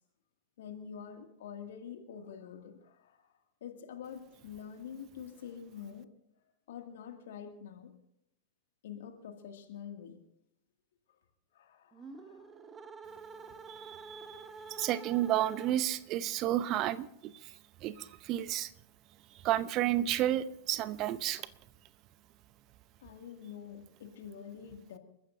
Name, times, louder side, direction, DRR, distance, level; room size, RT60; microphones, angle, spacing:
voice 1, 0.6-6.1 6.7-7.9 8.8-10.2 11.1-11.2 11.5-12.5 13.5-13.9 23.0-25.0, left 8 dB, 60° left, 5 dB, 2.3 m, -47 dB
sound 1, 11.9-16.1, right 4 dB, 20° right, 1.2 m, -48 dB
voice 2, 13.7-17.5 17.8-18.7 19.4-21.5, right 13 dB, 35° right, 15 dB, 0.8 m, -32 dB
29.5 x 14.5 x 2.7 m, 0.80 s
figure-of-eight pair, 90°, 0 cm